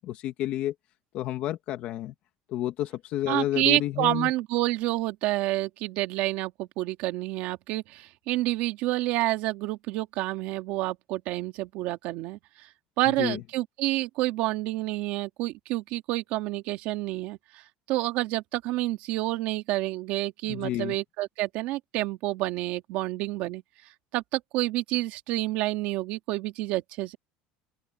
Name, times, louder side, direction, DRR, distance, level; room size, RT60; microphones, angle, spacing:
voice 1, 0.0-0.7 1.1-2.1 2.5-4.3 13.2-13.4 20.5-21.0, left 13 dB, 40° left, 2.0 m, -30 dB
voice 2, 3.3-12.4 13.0-17.6 17.9-23.6 24.1-27.2, right 17 dB, 55° right, 2.2 m, -29 dB
open air
cardioid pair, 180°, 3 cm